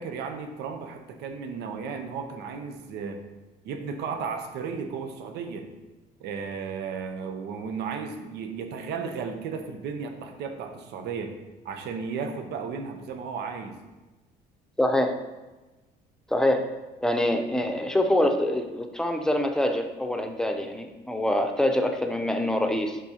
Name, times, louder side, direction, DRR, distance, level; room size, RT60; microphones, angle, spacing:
voice 1, 0.0-3.2 3.6-5.7 6.2-11.4 11.6-13.8, right 5 dB, 80° right, 6 dB, 0.8 m, -34 dB
voice 2, 14.8-15.2 16.3-16.7 17.0-23.0, left 1 dB, 5° left, 5 dB, 0.6 m, -25 dB
11.0 x 3.8 x 2.9 m, 1.2 s
cardioid pair, 110°, 17 cm